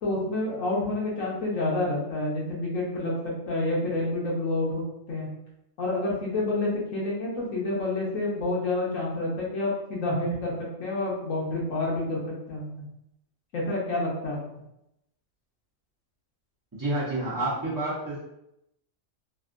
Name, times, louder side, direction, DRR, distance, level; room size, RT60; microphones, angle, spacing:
voice 1, 0.0-3.1 3.5-5.3 5.8-10.5 10.8-12.8 13.5-14.4, left 2 dB, 80° left, -4 dB, 1.4 m, -28 dB
voice 2, 16.8-18.2, right 1 dB, 30° right, -7 dB, 0.4 m, -29 dB
3.3 x 2.6 x 2.5 m, 0.83 s
omnidirectional pair, 1.3 m